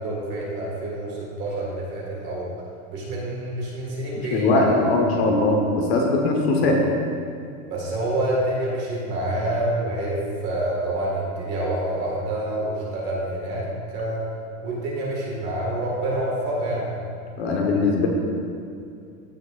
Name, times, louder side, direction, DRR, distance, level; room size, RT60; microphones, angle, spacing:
voice 1, 0.0-2.5 2.9-4.8 6.6-6.7 7.7-14.2 14.6-17.0, right 1 dB, 25° right, -4 dB, 1.9 m, -27 dB
voice 2, 4.3-6.8 17.4-18.1, left 3 dB, 50° left, 0 dB, 1.2 m, -20 dB
15.5 x 6.3 x 2.5 m, 2.5 s
supercardioid pair, 175°, 40 cm